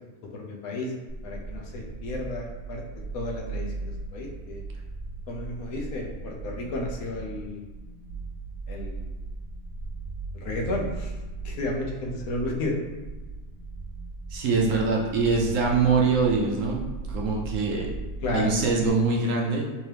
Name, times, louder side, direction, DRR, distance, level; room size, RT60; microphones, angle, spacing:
voice 1, 0.3-0.9 1.2-2.8 3.1-4.6 5.3-7.6 8.7-9.1 10.4-11.1 11.4-12.8 18.2-18.5, left 2 dB, 75° left, 0 dB, 1.1 m, -32 dB
sound 1, 1.1-18.9, right 3 dB, 50° left, 1.5 m, -37 dB
voice 2, 14.3-16.8 17.1-17.9 18.3-19.7, right 4 dB, 70° right, -1 dB, 0.8 m, -23 dB
3.4 x 2.9 x 3.2 m, 1.2 s
omnidirectional pair, 1.6 m